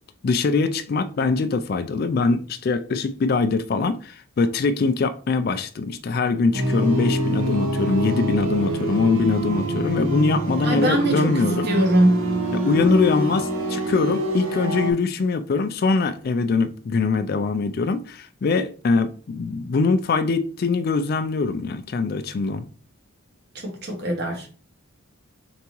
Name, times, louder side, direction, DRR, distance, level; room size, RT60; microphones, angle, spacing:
voice 1, 0.2-11.7 12.5-22.7, left 4 dB, 45° left, 0.3 m, -23 dB
sound 1, 6.5-14.9, equal, 75° right, 1.1 m, -25 dB
voice 2, 10.6-12.2 23.5-24.5, right 1 dB, 50° right, 1.1 m, -23 dB
4.0 x 3.5 x 2.9 m
head